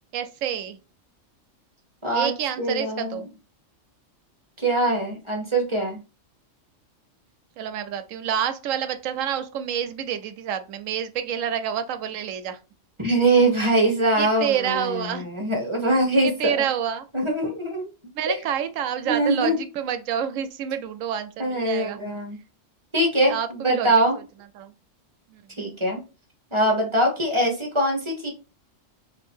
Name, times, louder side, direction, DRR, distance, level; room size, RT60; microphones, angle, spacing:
voice 1, 0.1-0.8 2.1-3.3 7.6-12.6 14.2-15.3 16.2-17.1 18.1-22.0 23.3-23.9 24.6-24.7 25.3-25.4, right 9 dB, 85° right, 1.0 m, -28 dB
voice 2, 2.0-3.2 4.6-6.0 13.0-16.6 17.1-17.9 18.3-18.4 19.0-19.6 21.4-22.4 22.9-24.2 25.6-26.0 26.5-28.3, right 1 dB, 25° right, 0.9 m, -23 dB
2.8 x 2.7 x 4.3 m
omnidirectional pair, 1.3 m